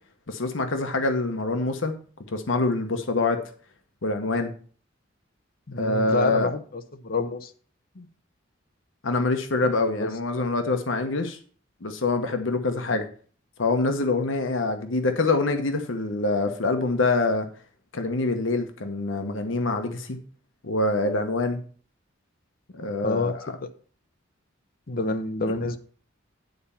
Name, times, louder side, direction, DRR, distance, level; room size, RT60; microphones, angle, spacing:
voice 1, 0.3-1.9 2.3-3.4 4.0-4.5 5.8-6.5 8.0-8.1 9.0-11.4 11.8-13.1 13.6-17.5 17.9-20.2 20.6-21.6 22.7-23.5, left 3 dB, 80° left, 7 dB, 1.0 m, -25 dB
voice 2, 5.7-6.6 7.0-7.5 10.0-10.1 23.0-23.3 23.6-23.7 24.9-25.8, left 3 dB, 50° left, 9 dB, 0.8 m, -27 dB
9.4 x 4.3 x 6.9 m, 0.43 s
head